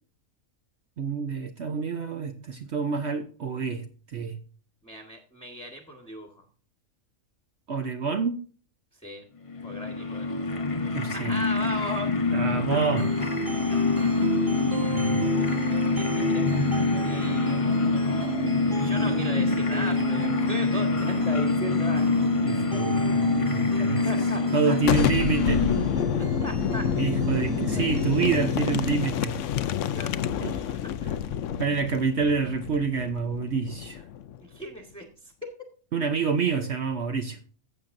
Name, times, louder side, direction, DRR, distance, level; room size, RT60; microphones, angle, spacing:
voice 1, 1.0-4.4 7.7-8.4 10.9-11.4 12.3-13.1 14.9-15.3 22.4-24.1 24.5-25.7 27.0-29.4 30.4-30.6 31.6-34.0 35.9-37.4, right 5 dB, 60° right, 1.1 m, -28 dB
voice 2, 4.8-6.4 8.9-9.2 9.6-10.3 11.1-12.4 12.7-13.0 15.9-16.7 17.0-17.9 18.8-22.2 23.6-23.7 24.0-24.8 26.4-26.8 27.6-28.3 29.9-31.2 34.4-35.3 35.6-35.7, equal, 5° left, 1.3 m, -38 dB
sound 1, 9.5-26.1, left 3 dB, 30° left, 0.8 m, -25 dB
sound 2, 13.0-29.0, right 2 dB, 15° right, 1.4 m, -34 dB
Boom, 24.8-34.4, left 9 dB, 70° left, 0.9 m, -28 dB
15.0 x 7.3 x 2.6 m
omnidirectional pair, 1.4 m